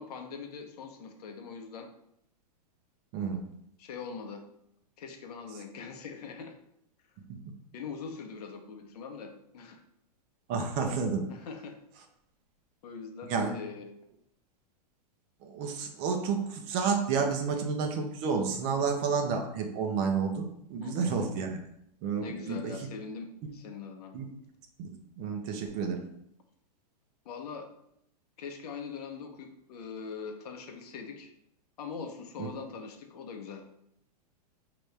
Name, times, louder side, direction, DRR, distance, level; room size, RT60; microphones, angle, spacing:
voice 1, 0.0-1.9 3.8-4.4 5.0-6.5 7.7-9.8 11.3-11.8 12.8-13.9 20.8-21.1 22.2-24.1 27.2-27.7 28.4-31.3 31.8-33.6, left 5 dB, 65° left, 4 dB, 0.9 m, -42 dB
voice 2, 3.1-3.5 10.5-11.3 13.3-13.5 15.4-21.6 22.0-22.7 23.4-23.5 24.1-24.3 24.8-24.9 25.2-26.0 32.4-32.5, right 5 dB, 40° right, 4 dB, 0.8 m, -30 dB
5.3 x 3.0 x 3.3 m, 0.75 s
hypercardioid pair, 125°, 21 cm